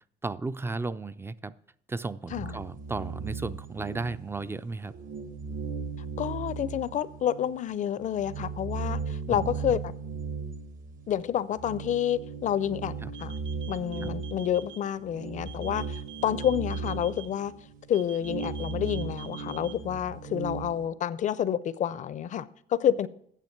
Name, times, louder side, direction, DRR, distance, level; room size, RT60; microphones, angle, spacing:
voice 1, 0.2-1.5 1.9-4.9 9.3-9.5 13.0-13.2 14.0-14.2, right 3 dB, 15° right, 0.4 m, -34 dB
sound 1, 2.3-4.6 4.9-7.6 8.0-20.9, right 5 dB, 50° right, 1.1 m, -37 dB
voice 2, 6.2-9.9 11.1-12.9 13.2-13.3 13.7-17.5 17.9-23.1, left 10 dB, 45° left, 0.5 m, -29 dB
sound 2, 13.1-14.8 15.5-17.3 17.9-19.7, right 11 dB, 85° right, 2.8 m, -46 dB
9.1 x 7.1 x 5.9 m
cardioid pair, 110°, 17 cm